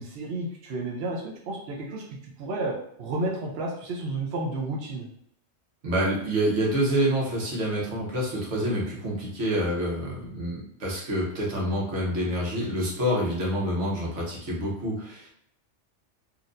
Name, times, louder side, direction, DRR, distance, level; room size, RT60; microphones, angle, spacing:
voice 1, 0.0-5.1, right 2 dB, 65° right, -1 dB, 0.9 m, -32 dB
voice 2, 5.8-15.3, equal, 85° right, -3 dB, 1.4 m, -27 dB
4.1 x 2.9 x 2.5 m, 0.70 s
omnidirectional pair, 1.2 m